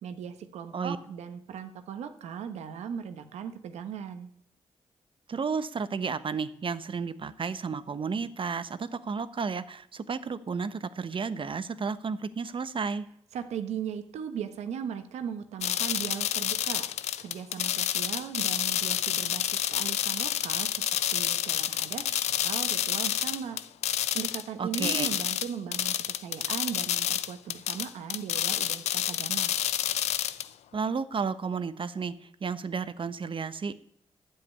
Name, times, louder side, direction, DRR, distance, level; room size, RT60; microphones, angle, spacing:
voice 1, 0.0-4.3 13.3-16.9 17.2-23.6 24.1-29.6, right 8 dB, 90° right, 9 dB, 1.2 m, -38 dB
voice 2, 5.3-13.1 24.6-25.1 30.7-33.7, right 5 dB, 50° right, 13 dB, 1.0 m, -32 dB
sound 1, 15.6-24.4 24.7-30.5, left 11 dB, 85° left, 0.5 m, -29 dB
10.0 x 7.7 x 9.5 m, 0.68 s
supercardioid pair, 55°, 11 cm